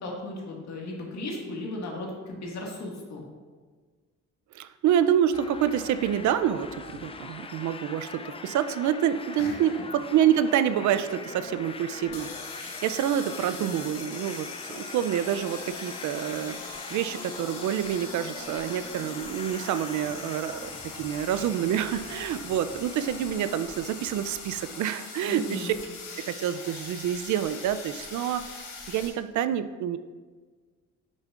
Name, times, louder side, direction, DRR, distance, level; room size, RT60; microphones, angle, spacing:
voice 1, 0.0-3.2 9.4-9.5 25.3-25.7, left 1 dB, 65° left, -1 dB, 1.8 m, -36 dB
voice 2, 4.5-20.7 21.0-25.7 26.2-28.5 28.9-30.0, right 10 dB, 70° right, 12 dB, 0.5 m, -27 dB
sound 1, 5.3-24.4, left 4 dB, 20° left, 0.4 m, -42 dB
sound 2, 12.0-29.1, left 4 dB, 85° left, 1.5 m, -42 dB
8.3 x 6.4 x 2.5 m, 1.4 s
cardioid pair, 90°, 30 cm